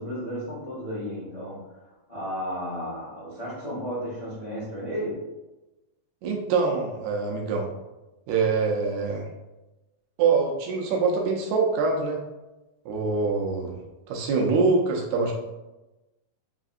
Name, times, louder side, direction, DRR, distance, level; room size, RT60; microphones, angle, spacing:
voice 1, 0.0-5.2, equal, 40° left, -10 dB, 0.5 m, -33 dB
voice 2, 6.2-7.7 8.3-9.3 10.2-12.2 12.9-13.8 14.1-15.3, right 4 dB, 80° right, 1 dB, 2.0 m, -24 dB
4.8 x 3.4 x 2.5 m, 1.1 s
omnidirectional pair, 3.4 m